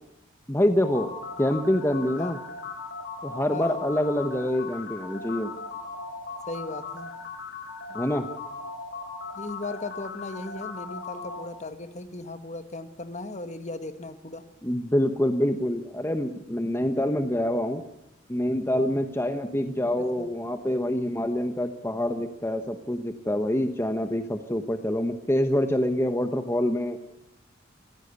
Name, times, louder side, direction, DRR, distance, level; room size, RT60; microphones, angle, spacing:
voice 1, 0.5-1.1 1.4-2.4 3.2-5.6 7.9-8.3 14.6-17.8 18.3-27.0, left 1 dB, 15° left, 7 dB, 1.1 m, -26 dB
sound 1, 0.8-11.4, left 4 dB, 55° left, 6.5 m, -38 dB
voice 2, 3.5-3.8 6.5-7.1 9.3-14.4 20.2-20.3, left 2 dB, 35° left, 9 dB, 1.7 m, -37 dB
25.0 x 16.5 x 8.2 m, 0.90 s
head